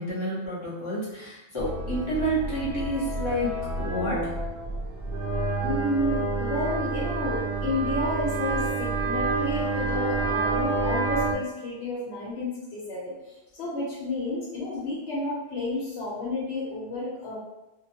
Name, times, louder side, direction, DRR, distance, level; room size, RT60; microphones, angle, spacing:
voice 1, 0.0-3.5 3.8-4.3, right 1 dB, 30° left, -9 dB, 0.9 m, -29 dB
sound 1, 1.6-11.3, right 3 dB, 70° right, 0.8 m, -28 dB
voice 2, 5.6-17.4, left 2 dB, 85° left, -7 dB, 0.9 m, -31 dB
2.2 x 2.1 x 2.8 m, 0.97 s
omnidirectional pair, 1.1 m